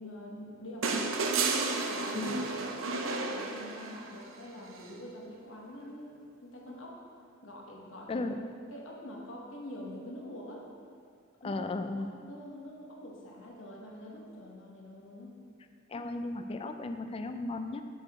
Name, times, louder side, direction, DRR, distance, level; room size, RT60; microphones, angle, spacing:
voice 1, 0.0-1.3 1.8-7.0 7.4-8.2 8.7-10.7 11.4-11.6 12.0-15.3 15.9-16.1, left 1 dB, 75° left, -2 dB, 1.2 m, -45 dB
sound 1, 0.8-4.2 5.7-5.8, right 3 dB, 85° right, 0.6 m, -32 dB
voice 2, 8.1-8.4 11.4-12.1 15.9-17.9, left 2 dB, 30° left, 7 dB, 0.4 m, -35 dB
7.9 x 6.7 x 3.6 m, 2.2 s
head